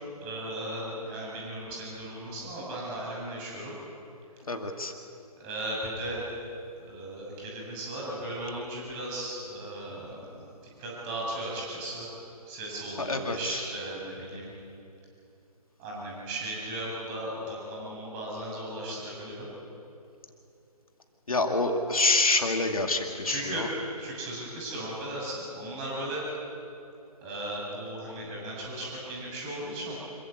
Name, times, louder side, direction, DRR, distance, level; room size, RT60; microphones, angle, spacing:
voice 1, 0.2-3.7 5.4-6.2 6.8-10.5 10.8-12.1 12.5-14.5 15.8-19.5 23.2-23.7 24.0-26.3 27.2-30.0, right 1 dB, 20° right, -4 dB, 7.1 m, -36 dB
voice 2, 4.5-4.9 13.0-13.6 21.3-23.7, left 2 dB, 60° left, 4 dB, 2.3 m, -27 dB
27.0 x 15.0 x 8.4 m, 2.7 s
figure-of-eight pair, 145°, 20 cm